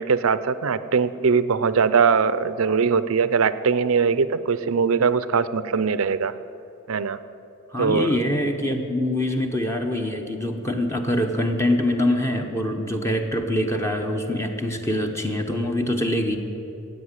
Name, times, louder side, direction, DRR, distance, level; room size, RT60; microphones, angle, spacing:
voice 1, 0.0-6.3 6.9-7.2 7.8-8.1 8.7-8.8, right 5 dB, 70° right, 15 dB, 0.5 m, -21 dB
voice 2, 7.7-16.4, left 1 dB, 15° left, 4 dB, 0.8 m, -24 dB
16.0 x 8.1 x 9.6 m, 3.0 s
head